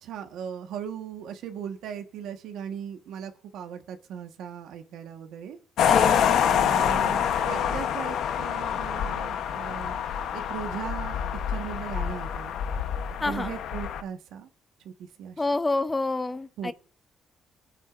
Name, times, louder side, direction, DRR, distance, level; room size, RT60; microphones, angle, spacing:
voice 1, 0.0-5.6 6.5-10.0 10.3-11.2 11.5-12.5 13.2-14.5 14.8-15.4 16.6-16.7, right 8 dB, 85° right, 1.3 m, -38 dB
sound 1, 5.8-14.0, left 8 dB, 80° left, 0.9 m, -26 dB
voice 2, 5.9-6.3 13.2-13.5 15.4-16.7, left 2 dB, 20° left, 0.7 m, -28 dB
22.0 x 9.0 x 2.5 m
cardioid pair, 90°, 0 cm